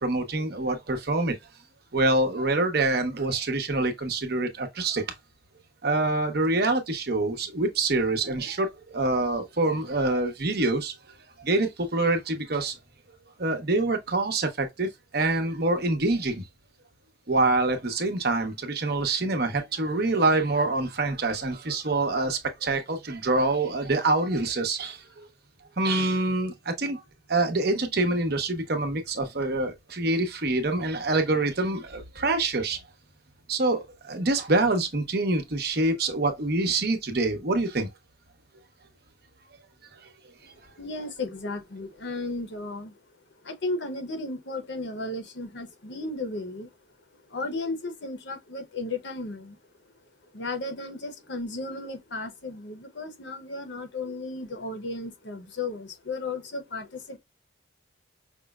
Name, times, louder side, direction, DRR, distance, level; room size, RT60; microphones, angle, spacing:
voice 1, 0.0-1.3 1.9-5.0 5.8-10.9 11.4-12.7 13.4-14.9 15.1-16.4 17.3-25.2 25.8-27.0 27.3-32.8 33.5-37.9, right 2 dB, 55° right, 0.9 m, -26 dB
voice 2, 40.8-42.9 43.4-46.7 47.3-49.6 50.3-57.2, left 2 dB, 65° left, 0.8 m, -34 dB
5.3 x 2.1 x 2.3 m
head